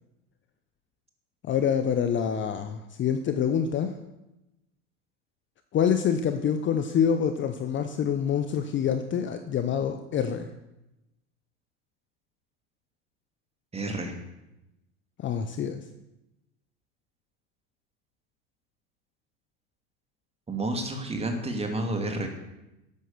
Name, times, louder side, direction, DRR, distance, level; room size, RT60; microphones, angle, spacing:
voice 1, 1.4-4.0 5.7-10.5 15.2-15.9, left 8 dB, 25° left, 8 dB, 0.9 m, -26 dB
voice 2, 13.7-14.1 20.5-22.3, right 2 dB, 15° right, 3 dB, 2.6 m, -30 dB
12.0 x 9.2 x 6.8 m, 0.95 s
hypercardioid pair, 90°, 43 cm